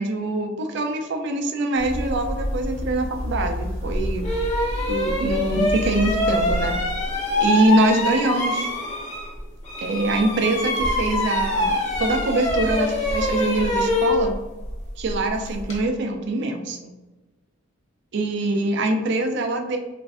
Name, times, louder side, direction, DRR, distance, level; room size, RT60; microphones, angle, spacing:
voice 1, 0.0-4.3 4.9-6.7 7.4-8.7 9.8-14.3 15.0-16.9 18.1-19.8, right 2 dB, 60° right, 4 dB, 0.4 m, -24 dB
sound 1, 1.8-6.8, equal, 75° left, 0.8 m, -29 dB
sound 2, 3.6-3.7 4.2-9.4 9.6-15.8, left 1 dB, 35° left, 0.8 m, -25 dB
3.1 x 2.5 x 2.4 m, 1.2 s
head